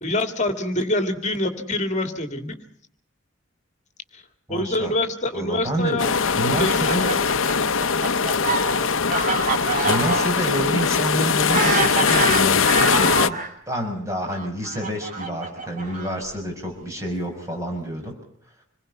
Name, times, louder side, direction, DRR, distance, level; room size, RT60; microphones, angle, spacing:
voice 1, 0.0-2.6 4.1-4.2 4.5-6.1 6.6-7.3, left 1 dB, 35° left, 7 dB, 2.3 m, -25 dB
voice 2, 4.5-4.9 5.3-6.0 6.3-7.1 9.8-13.4 13.7-18.1, right 1 dB, 15° right, 1 dB, 6.0 m, -28 dB
sound 1, 6.0-13.3, left 5 dB, 75° left, 0.8 m, -21 dB
Fowl, 6.6-13.5 14.3-16.3, right 3 dB, 40° right, 3.2 m, -26 dB
26.5 x 21.5 x 5.6 m, 0.65 s
head